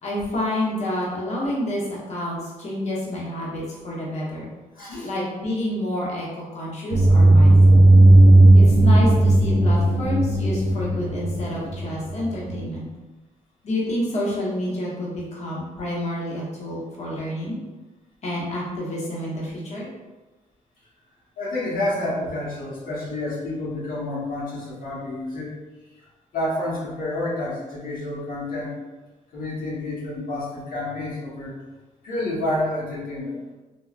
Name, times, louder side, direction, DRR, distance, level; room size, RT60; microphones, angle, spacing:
voice 1, 0.0-4.5 5.0-7.9 8.5-12.9 13.6-17.6 18.2-19.9, left 1 dB, 50° left, -6 dB, 0.9 m, -28 dB
voice 2, 4.7-5.1 21.4-25.5 26.0-26.1 26.3-28.8 29.3-31.5 32.0-33.4, left 1 dB, 75° left, -7 dB, 1.0 m, -29 dB
sound 1, 6.9-12.7, right 1 dB, 30° right, 0.3 m, -15 dB
3.3 x 2.3 x 2.4 m, 1.2 s
cardioid pair, 120°, 14 cm